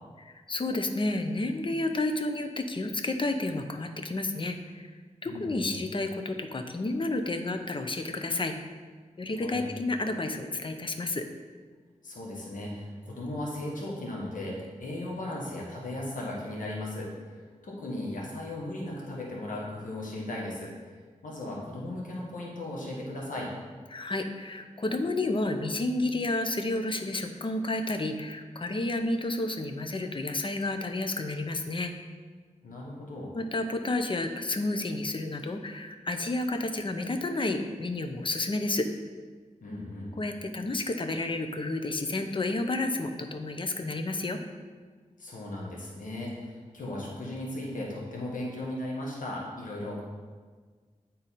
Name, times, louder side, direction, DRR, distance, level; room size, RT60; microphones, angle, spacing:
voice 1, 0.2-4.9 5.2-8.6 9.2-11.3 23.9-31.9 33.3-38.9 40.2-44.4, left 2 dB, 40° left, 6 dB, 0.7 m, -31 dB
voice 2, 5.2-5.8 9.4-9.6 12.0-23.5 32.6-33.3 39.6-40.1 45.2-50.0, left 1 dB, 85° left, -3 dB, 1.3 m, -37 dB
8.9 x 3.9 x 4.2 m, 1.5 s
cardioid pair, 60°, 13 cm